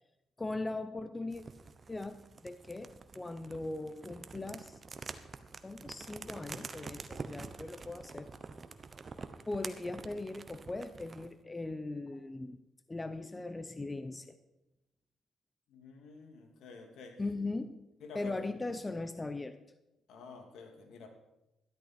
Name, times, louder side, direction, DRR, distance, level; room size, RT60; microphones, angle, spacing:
voice 1, 0.4-1.4 1.9-4.8 5.6-8.3 9.5-12.6 12.9-14.4 17.2-17.8 18.1-19.6, left 2 dB, 20° left, 11 dB, 0.7 m, -39 dB
sound 1, 1.3-11.3, right 4 dB, 35° right, 0.9 m, -47 dB
voice 2, 15.7-17.2 18.0-18.4 20.1-21.1, left 4 dB, 75° left, 4 dB, 2.3 m, -50 dB
13.5 x 11.5 x 4.4 m, 0.92 s
cardioid pair, 90°, 0 cm